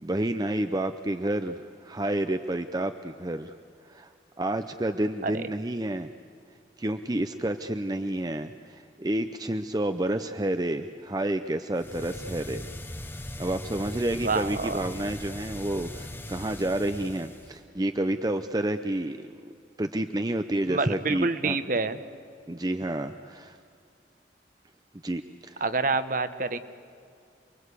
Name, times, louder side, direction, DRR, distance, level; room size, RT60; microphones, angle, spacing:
voice 1, 0.0-3.6 3.8-4.1 4.4-6.1 6.8-12.7 13.4-19.5 19.8-21.6 22.5-23.6 25.0-25.6, right 1 dB, 20° right, 8 dB, 0.6 m, -30 dB
sound 1, 11.7-17.6, left 1 dB, 10° left, 0.9 m, -39 dB
voice 2, 14.2-14.8 20.7-22.0 25.6-26.6, right 3 dB, 45° right, 12 dB, 1.0 m, -27 dB
28.5 x 22.0 x 8.3 m, 2.3 s
head